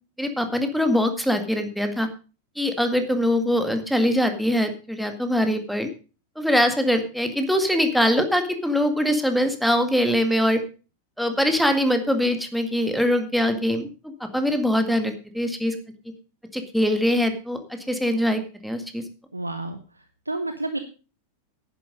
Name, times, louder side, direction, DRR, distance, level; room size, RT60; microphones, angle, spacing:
voice 1, 0.2-2.1 2.6-5.9 6.4-10.6 11.2-15.8 16.5-19.0, equal, ahead, 7 dB, 1.9 m, -23 dB
voice 2, 19.3-19.8 20.3-20.8, right 2 dB, 85° right, 8 dB, 1.0 m, -29 dB
11.0 x 10.5 x 5.2 m, 0.35 s
figure-of-eight pair, 90°, 0 cm